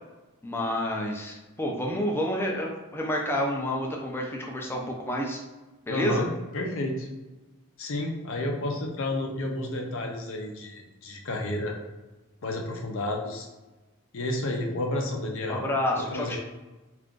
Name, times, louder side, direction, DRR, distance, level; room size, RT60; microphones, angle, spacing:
voice 1, 0.4-5.4 5.9-6.2 15.5-16.4, left 1 dB, 10° left, -1 dB, 0.4 m, -29 dB
voice 2, 5.9-6.3 6.5-7.1 7.8-11.8 12.4-13.5 14.1-15.6 15.9-16.4, left 1 dB, 60° left, 2 dB, 0.5 m, -31 dB
2.5 x 2.3 x 3.7 m, 1.1 s
head